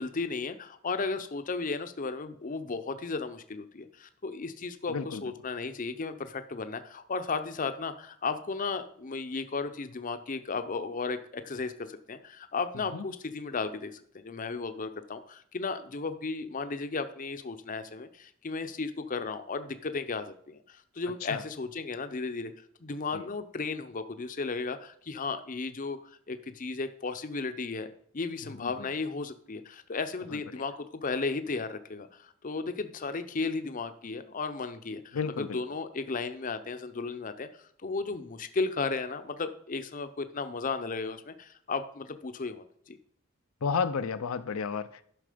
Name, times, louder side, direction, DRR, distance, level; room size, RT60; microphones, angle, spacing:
voice 1, 0.0-22.5 22.8-27.9 28.1-43.0, left 4 dB, 40° left, 0.6 m, -35 dB
voice 2, 4.9-5.2 12.9-13.0 21.2-21.4 23.1-23.3 28.4-28.9 30.3-30.6 35.1-35.6 43.6-45.0, left 5 dB, 80° left, 0.5 m, -33 dB
11.0 x 6.0 x 5.0 m
head